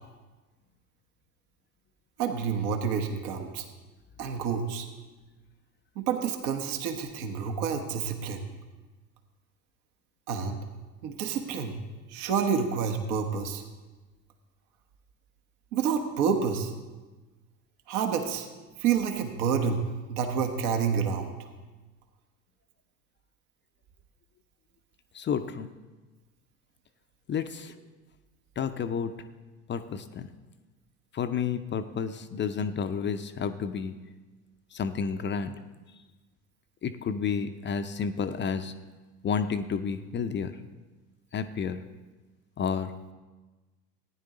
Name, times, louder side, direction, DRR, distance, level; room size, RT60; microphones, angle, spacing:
voice 1, 2.2-3.6 4.2-4.9 6.0-8.4 10.3-10.6 11.0-11.8 12.1-13.6 15.7-16.7 17.9-18.5 18.8-19.8 20.1-21.3, right 6 dB, 65° right, 5 dB, 1.3 m, -28 dB
voice 2, 25.1-25.7 27.3-27.7 28.6-29.1 29.7-30.3 31.1-33.9 34.7-35.5 36.8-38.7 39.2-40.6 41.3-41.8 42.6-42.9, left 6 dB, 25° left, 10 dB, 0.5 m, -30 dB
15.0 x 9.7 x 3.9 m, 1.2 s
hypercardioid pair, 70°, 47 cm